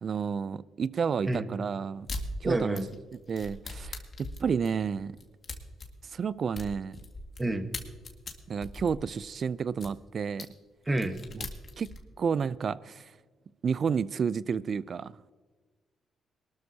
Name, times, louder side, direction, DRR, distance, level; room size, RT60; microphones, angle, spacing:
voice 1, 0.0-2.1 2.4-2.8 3.3-5.2 6.1-7.0 8.5-10.5 11.3-11.5 11.8-11.9 12.2-13.1 13.6-15.1, right 6 dB, 50° right, 18 dB, 0.4 m, -31 dB
sound 1, 2.1-2.3 2.8-7.4 7.7-9.9 10.4-10.5 10.9-12.0, left 3 dB, 45° left, 2.0 m, -40 dB
voice 2, 2.4-2.9 7.4-7.7 10.9-11.2, right 2 dB, 20° right, 8 dB, 1.3 m, -29 dB
22.0 x 13.0 x 2.8 m, 1.4 s
cardioid pair, 85°, 0 cm